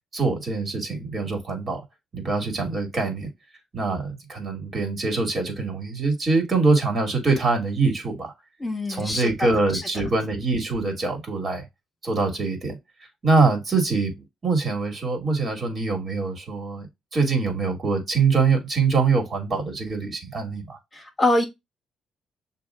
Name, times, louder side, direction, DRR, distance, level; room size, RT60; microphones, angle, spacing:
voice 1, 0.1-1.8 2.1-3.3 3.7-8.3 8.9-11.6 12.0-12.8 13.2-16.9 17.1-20.8, right 4 dB, 40° right, 2.2 m, -24 dB
voice 2, 8.6-9.3 9.7-9.8 20.9-21.4, left 2 dB, 20° left, 1.5 m, -24 dB
6.9 x 2.8 x 2.4 m
cardioid pair, 90°, 0 cm